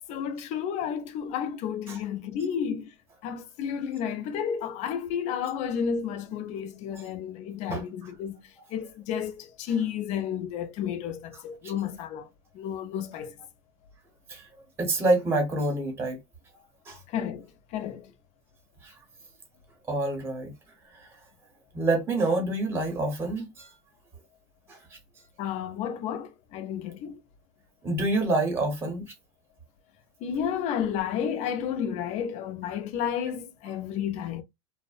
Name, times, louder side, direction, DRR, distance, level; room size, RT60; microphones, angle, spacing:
voice 1, 0.1-2.9 3.2-12.3 12.5-13.4 17.1-18.1 25.4-27.2 30.2-34.4, left 8 dB, 45° left, 0.5 m, -32 dB
voice 2, 14.3-16.2 16.9-17.0 18.8-18.9 19.9-20.5 20.9-21.1 21.7-23.7 24.7-24.8 27.8-29.0, right 2 dB, 15° right, 0.8 m, -27 dB
2.6 x 2.0 x 2.4 m
supercardioid pair, 145°, 17 cm